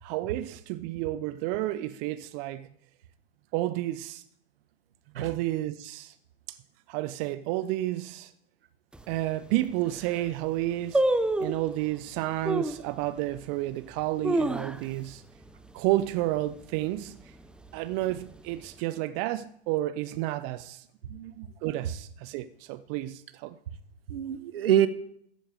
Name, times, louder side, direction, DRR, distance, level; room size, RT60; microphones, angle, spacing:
voice 1, 0.0-2.7 3.5-4.2 5.2-6.1 6.5-6.6 6.9-8.3 9.1-11.0 11.4-15.2 15.7-17.4 17.7-20.8 21.6-23.6, right 16 dB, 40° right, 0.7 m, -31 dB
sound 1, 8.9-9.0 9.6-9.7 9.9-10.3 10.9-11.7 12.4-12.8 13.4-13.5 14.0-15.1 15.4-15.5 15.8-16.2 16.6-17.0 17.6-18.4 18.6-18.7, right 1 dB, 5° right, 0.7 m, -27 dB
voice 2, 21.1-21.5 24.1-24.9, right 11 dB, 65° right, 1.3 m, -26 dB
14.0 x 8.5 x 7.5 m
hypercardioid pair, 105°, 31 cm